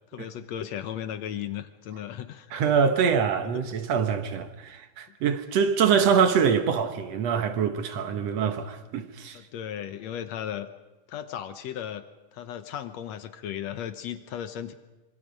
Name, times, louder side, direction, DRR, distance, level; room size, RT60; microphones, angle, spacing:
voice 1, 0.1-2.5 3.5-3.6 5.8-6.1 9.3-10.7 11.1-12.0 12.3-14.7, left 10 dB, 70° left, 1.7 m, -36 dB
voice 2, 2.5-9.4, right 7 dB, 60° right, 1.9 m, -24 dB
26.0 x 26.0 x 5.3 m
omnidirectional pair, 4.1 m